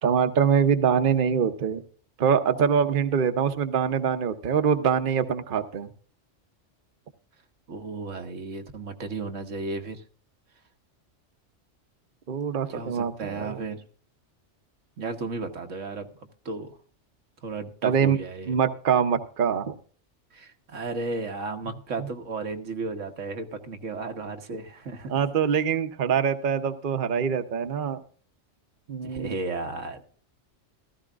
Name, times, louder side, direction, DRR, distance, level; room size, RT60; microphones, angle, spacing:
voice 1, 0.0-1.8 2.2-5.9 12.3-13.6 17.8-18.2 18.5-19.7 25.1-28.0 28.9-29.4, right 7 dB, 50° right, 8 dB, 1.0 m, -24 dB
voice 2, 7.7-10.0 12.7-13.8 15.0-16.1 16.4-16.8 17.4-18.6 20.3-25.1 29.0-30.0, right 3 dB, 85° right, 5 dB, 1.6 m, -34 dB
15.5 x 14.0 x 2.4 m, 0.43 s
omnidirectional pair, 1.2 m